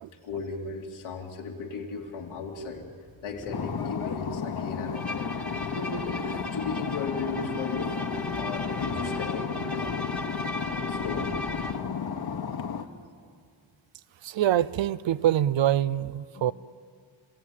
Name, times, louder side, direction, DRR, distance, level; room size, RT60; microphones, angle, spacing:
voice 1, 0.2-2.9 3.2-5.3 5.6-9.9 10.9-11.3 16.3-16.5, left 4 dB, 85° left, 0 dB, 2.9 m, -36 dB
sound 1, 2.0-12.6, left 4 dB, 25° left, 1.5 m, -46 dB
sound 2, 3.5-12.8, left 6 dB, 50° left, 1.4 m, -33 dB
Bowed string instrument, 4.9-11.9, left 1 dB, ahead, 1.3 m, -37 dB
voice 2, 14.2-16.5, right 11 dB, 65° right, 17 dB, 0.7 m, -25 dB
30.0 x 15.5 x 9.0 m, 2.2 s
cardioid pair, 95°, 48 cm